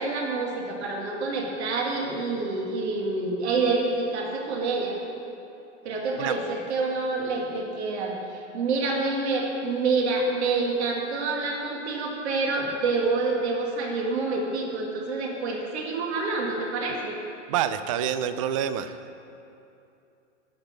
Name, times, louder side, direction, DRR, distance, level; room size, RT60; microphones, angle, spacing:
voice 1, 0.0-5.0 5.8-17.2, right 3 dB, 60° right, -1 dB, 2.0 m, -27 dB
voice 2, 17.5-18.9, right 9 dB, 30° right, 12 dB, 0.3 m, -27 dB
11.5 x 5.8 x 6.6 m, 2.7 s
hypercardioid pair, 130°, 37 cm